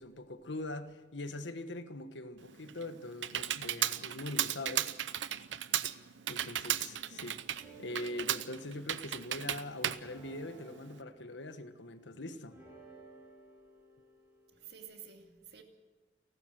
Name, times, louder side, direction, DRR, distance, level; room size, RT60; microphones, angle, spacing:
voice 1, 0.0-4.9 6.3-12.6, left 1 dB, 80° left, 1.4 m, -42 dB
Computer keyboard, 2.4-11.0, right 11 dB, 85° right, 0.8 m, -36 dB
sound 1, 6.6-14.9, right 3 dB, 5° right, 7.2 m, -58 dB
voice 2, 6.9-7.3 14.5-15.6, right 7 dB, 60° right, 2.5 m, -52 dB
30.0 x 12.5 x 7.9 m
head